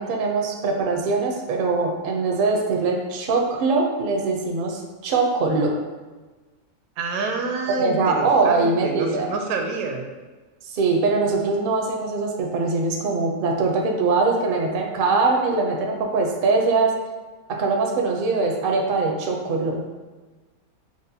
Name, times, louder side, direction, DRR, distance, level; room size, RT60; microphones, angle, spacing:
voice 1, 0.0-5.8 7.7-9.3 10.7-17.0 17.5-20.0, right 3 dB, 60° right, 1 dB, 0.6 m, -22 dB
voice 2, 7.0-10.1, right 4 dB, 80° right, 3 dB, 1.0 m, -28 dB
6.2 x 2.1 x 2.7 m, 1.3 s
omnidirectional pair, 1.5 m